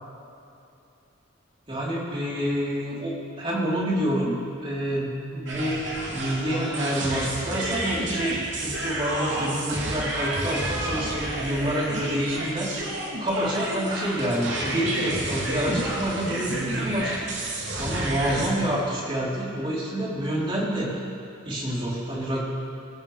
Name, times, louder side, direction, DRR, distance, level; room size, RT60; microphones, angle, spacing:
voice 1, 1.7-5.8 6.1-17.3 17.8-20.9 21.4-22.4, equal, 25° right, -6 dB, 4.0 m, -28 dB
sound 1, 5.5-18.5, right 1 dB, 65° right, 3.3 m, -30 dB
25.0 x 15.0 x 3.5 m, 2.8 s
head